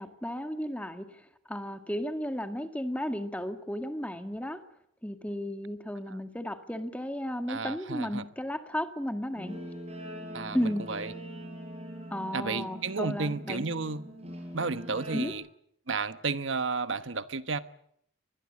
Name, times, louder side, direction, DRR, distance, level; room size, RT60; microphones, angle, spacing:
voice 1, 0.0-4.6 5.0-9.6 10.5-10.8 12.1-13.7 15.1-15.3, equal, 5° left, 1.9 m, -34 dB
voice 2, 7.5-8.3 10.3-10.6 10.9-11.1 12.3-14.1 14.5-15.4 15.9-17.6, right 4 dB, 80° right, 1.1 m, -32 dB
Guitar, 9.3-15.3, equal, 30° right, 6.4 m, -42 dB
24.5 x 21.0 x 8.6 m
head